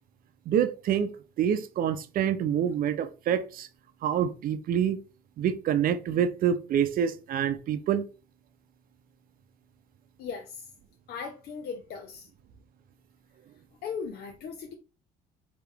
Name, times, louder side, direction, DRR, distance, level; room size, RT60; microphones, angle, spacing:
voice 1, 0.5-1.1 1.4-3.7 4.0-5.0 5.4-8.1, right 9 dB, 60° right, 0.6 m, -26 dB
voice 2, 10.2-10.7 11.1-12.3 13.8-14.7, left 6 dB, 65° left, 0.8 m, -38 dB
4.5 x 2.9 x 3.4 m
cardioid pair, 110°, 17 cm